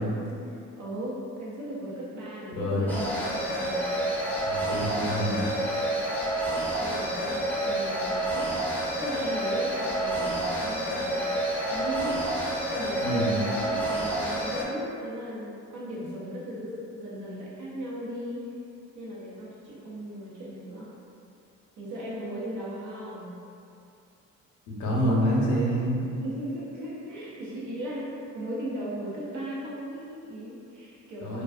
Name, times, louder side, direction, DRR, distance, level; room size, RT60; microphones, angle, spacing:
voice 1, 0.0-4.1 6.8-12.2 12.7-18.5 18.9-20.9 21.8-23.3 26.2-31.4, equal, 75° right, -7 dB, 0.8 m, -37 dB
voice 2, 2.5-2.9 4.4-5.4 13.0-13.4 24.7-26.0 31.2-31.4, equal, 75° left, -4 dB, 0.7 m, -27 dB
sound 1, 2.9-14.6, right 1 dB, 5° left, 0.5 m, -29 dB
2.4 x 2.3 x 2.3 m, 2.5 s
cardioid pair, 90°, 30 cm